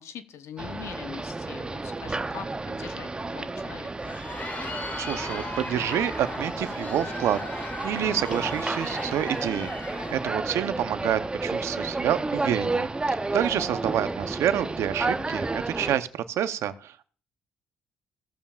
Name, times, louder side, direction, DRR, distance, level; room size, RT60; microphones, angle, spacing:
voice 1, 0.0-4.2 13.1-13.7, left 8 dB, 70° left, 10 dB, 0.9 m, -43 dB
sound 1, 0.6-16.0, right 3 dB, 20° right, 0.6 m, -32 dB
Crowd, 3.8-10.4, left 3 dB, 35° left, 1.7 m, -37 dB
voice 2, 5.0-12.9 13.3-17.1, right 10 dB, 75° right, 12 dB, 0.7 m, -28 dB
17.0 x 7.1 x 2.4 m, 0.42 s
supercardioid pair, 75°, 5 cm